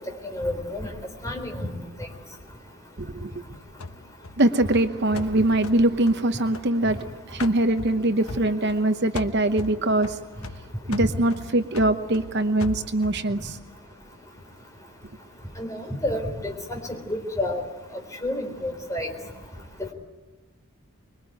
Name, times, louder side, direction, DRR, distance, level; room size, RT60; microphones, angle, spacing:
voice 1, 0.2-0.9 1.2-1.8 11.0-11.1 15.6-17.6 17.9-19.1, left 1 dB, 15° left, 4.1 m, -30 dB
sound 1, 3.8-7.0 7.4-8.9 9.1-13.3, left 3 dB, 75° left, 1.1 m, -39 dB
voice 2, 4.4-7.0 7.3-10.1 10.9-13.6, right 1 dB, 50° right, 1.0 m, -22 dB
25.5 x 22.5 x 9.3 m
head